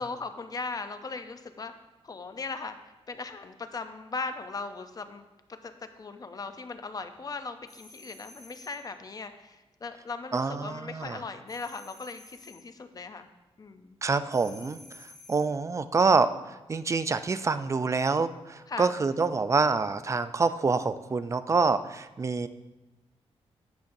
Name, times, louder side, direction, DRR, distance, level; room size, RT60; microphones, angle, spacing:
voice 1, 0.0-1.7 2.0-5.2 5.5-13.3 13.6-14.0 18.7-18.9, left 4 dB, 35° left, 9 dB, 0.6 m, -38 dB
sound 1, 7.7-8.9 11.5-12.7 14.3-15.6, left 2 dB, ahead, 2.7 m, -52 dB
voice 2, 10.3-11.2 14.0-22.5, right 4 dB, 30° right, 12 dB, 0.4 m, -26 dB
10.5 x 7.2 x 2.7 m, 1.1 s
cardioid pair, 105°, 11 cm